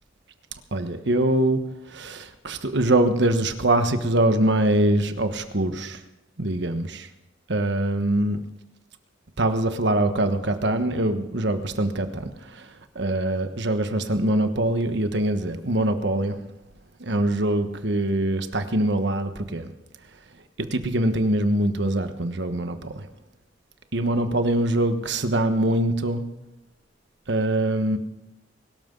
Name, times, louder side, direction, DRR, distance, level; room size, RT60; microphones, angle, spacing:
voice 1, 0.7-1.6 1.9-6.0 6.4-7.1 7.5-8.4 9.4-12.7 12.9-16.3 17.0-19.7 20.7-23.1 23.9-26.2 27.3-28.0, right 1 dB, 65° right, 8 dB, 1.3 m, -23 dB
23.0 x 13.0 x 3.9 m, 0.94 s
head